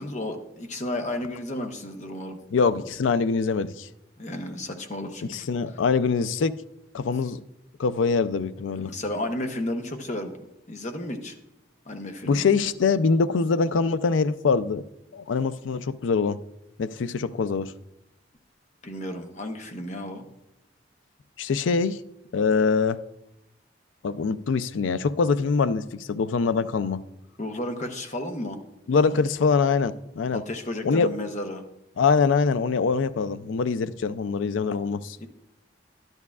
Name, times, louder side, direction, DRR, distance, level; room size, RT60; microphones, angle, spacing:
voice 1, 0.0-2.4 4.2-5.8 8.8-10.4 10.7-11.3 11.9-12.5 18.8-20.3 27.4-28.6 30.3-31.6 35.2-35.3, left 1 dB, 40° left, 0.8 m, -33 dB
voice 2, 2.5-3.9 5.3-6.6 6.9-7.4 7.8-8.9 12.3-14.8 15.1-16.4 16.8-17.7 21.4-22.0 22.3-23.0 24.0-27.0 28.9-30.4 30.8-31.1 32.0-35.2, left 5 dB, 90° left, 0.4 m, -24 dB
12.0 x 10.5 x 2.4 m
head